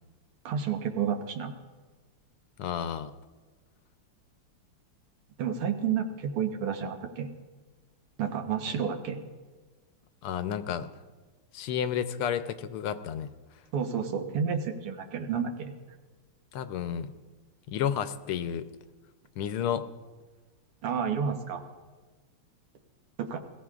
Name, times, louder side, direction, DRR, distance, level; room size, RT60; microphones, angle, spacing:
voice 1, 0.5-1.6 5.4-7.3 8.2-9.2 13.7-15.7 20.8-21.6 23.2-23.4, right 7 dB, 85° right, 5 dB, 2.0 m, -30 dB
voice 2, 2.6-3.1 8.7-8.8 10.2-10.9 11.5-13.3 16.5-17.1 17.7-18.7 19.4-19.9, left 9 dB, 80° left, 10 dB, 1.5 m, -31 dB
21.0 x 15.5 x 2.4 m, 1.3 s
omnidirectional pair, 2.4 m